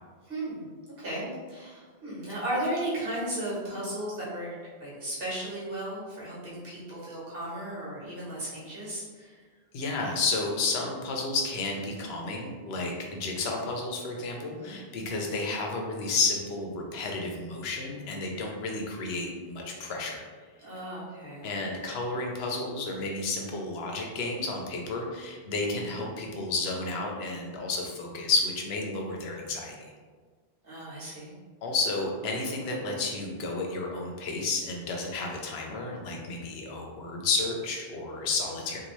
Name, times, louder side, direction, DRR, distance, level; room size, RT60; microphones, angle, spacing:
voice 1, 0.2-4.5 4.8-9.4 14.5-14.7 20.6-21.5 25.8-26.0 30.6-31.3, right 1 dB, 65° right, -8 dB, 1.4 m, -35 dB
voice 2, 9.7-20.2 21.4-29.9 31.6-38.8, left 3 dB, 85° left, 0 dB, 0.8 m, -31 dB
2.7 x 2.5 x 3.0 m, 1.5 s
omnidirectional pair, 1.0 m